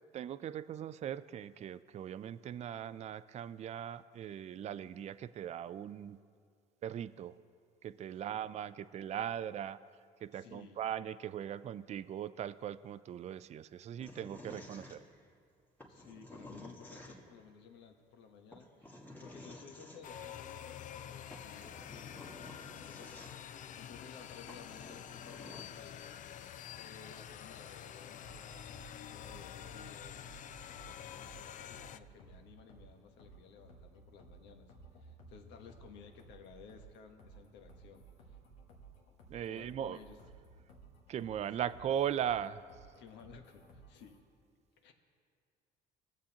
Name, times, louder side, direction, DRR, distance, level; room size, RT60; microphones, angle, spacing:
voice 1, 0.1-6.2 6.8-7.3 7.8-9.8 10.2-15.0 39.3-40.0 41.1-42.6, right 10 dB, 35° right, 14 dB, 0.4 m, -39 dB
voice 2, 10.3-10.8 15.9-23.4 23.8-28.7 29.0-30.3 30.7-34.7 35.0-38.0 39.4-40.2 41.7-41.8 43.0-44.2 44.8-44.9, left 6 dB, 70° left, 5 dB, 1.1 m, -56 dB
sound 1, 14.0-15.3 15.8-17.5 18.5-20.0 21.0-21.1 21.3-23.6 24.1-24.2 24.5-25.6, left 1 dB, 10° left, 1.5 m, -52 dB
sound 2, 20.0-32.0, left 9 dB, 45° left, 0.4 m, -48 dB
sound 3, 28.2-44.2, right 3 dB, 85° left, 1.4 m, -57 dB
19.5 x 7.3 x 2.9 m, 2.2 s
supercardioid pair, 85°, 19 cm